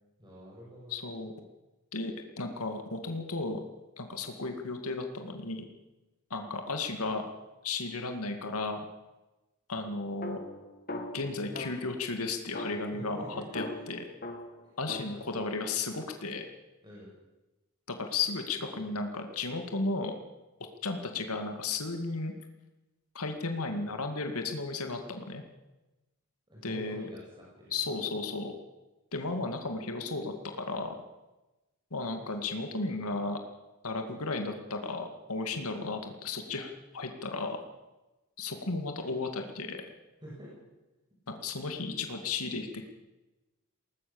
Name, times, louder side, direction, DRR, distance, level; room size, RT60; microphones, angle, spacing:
voice 1, 0.2-1.0 12.9-13.6 15.0-15.4 16.8-17.1 26.5-27.8 40.2-40.5, equal, 20° right, -5 dB, 6.5 m, -47 dB
voice 2, 0.9-1.3 1.9-3.6 4.0-5.6 6.3-7.3 7.6-8.8 9.7-10.4 11.1-14.1 14.8-16.5 18.0-20.1 20.8-22.3 23.1-25.4 26.6-27.1 27.7-28.5 29.1-30.9 31.9-33.4 33.8-37.6 38.4-39.8 41.4-42.8, left 3 dB, 80° left, 5 dB, 2.2 m, -34 dB
sound 1, 10.2-12.0 12.5-15.2, left 2 dB, 40° left, 2.1 m, -41 dB
20.5 x 18.5 x 7.1 m, 1.1 s
head